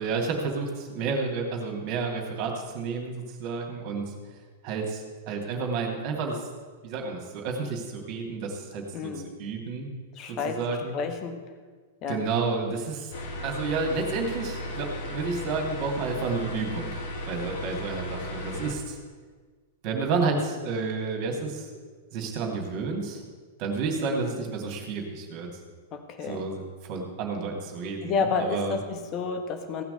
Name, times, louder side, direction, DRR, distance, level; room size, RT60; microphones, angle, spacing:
voice 1, 0.0-4.1 4.6-6.4 6.8-9.1 9.4-9.9 10.3-11.0 12.1-13.1 13.4-16.9 17.3-19.0 19.8-21.7 22.1-23.2 23.6-25.5 26.2-28.8, right 4 dB, 40° right, 2 dB, 2.6 m, -30 dB
voice 2, 8.9-9.3 10.2-10.6 10.9-11.4 12.0-12.2 24.1-24.3 25.9-26.4 28.0-29.8, left 5 dB, 35° left, 6 dB, 1.4 m, -30 dB
sound 1, 13.1-18.7, left 1 dB, 55° left, 2.2 m, -35 dB
16.0 x 5.9 x 8.2 m, 1.5 s
figure-of-eight pair, 100°, 0 cm